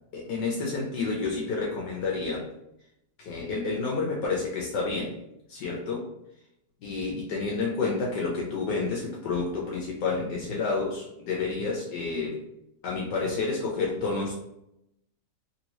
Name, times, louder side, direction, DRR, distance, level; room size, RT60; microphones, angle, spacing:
voice 1, 0.1-2.5 3.2-5.1 5.5-6.1 6.8-12.4 12.8-14.3, left 4 dB, 75° left, -3 dB, 1.3 m, -29 dB
3.0 x 2.8 x 2.9 m, 0.80 s
omnidirectional pair, 1.9 m